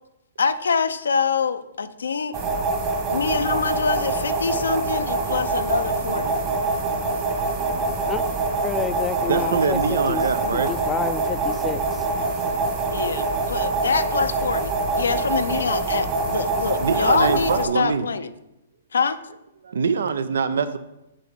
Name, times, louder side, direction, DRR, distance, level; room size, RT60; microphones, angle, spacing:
voice 1, 0.4-2.4 3.1-6.4 12.9-18.3 18.9-19.2, left 5 dB, 90° left, 0.5 m, -25 dB
sound 1, 2.3-17.7, right 3 dB, 30° right, 1.5 m, -25 dB
voice 2, 7.0-7.4 9.3-10.7 12.9-13.0 16.8-18.1 19.6-20.8, right 5 dB, 80° right, 0.6 m, -24 dB
voice 3, 8.6-9.8 10.1-10.2 10.7-11.8, left 6 dB, 15° left, 0.4 m, -28 dB
7.6 x 4.2 x 5.1 m
hypercardioid pair, 140°, 0 cm